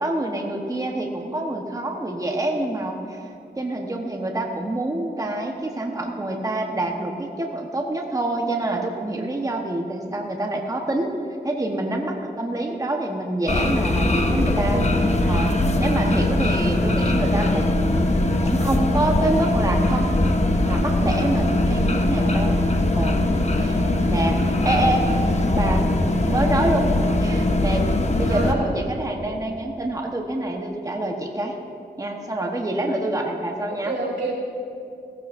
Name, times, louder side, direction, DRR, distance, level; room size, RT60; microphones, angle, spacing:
voice 1, 0.0-3.2 3.6-11.1 11.4-14.8 15.2-15.5 15.8-18.1 18.4-20.1 20.6-22.5 22.9-23.2 23.5-23.8 24.1-25.1 25.5-25.9 26.2-26.9 27.2-27.9 28.2-31.5 32.0-34.0, right 1 dB, 20° right, 1 dB, 1.2 m, -26 dB
sound 1, 13.5-28.5, left 1 dB, 40° left, 1.0 m, -21 dB
voice 2, 14.6-15.1 28.3-28.6 33.9-34.3, right 3 dB, 80° right, -3 dB, 3.0 m, -29 dB
16.5 x 15.0 x 2.6 m, 2.6 s
wide cardioid pair, 70°, 18 cm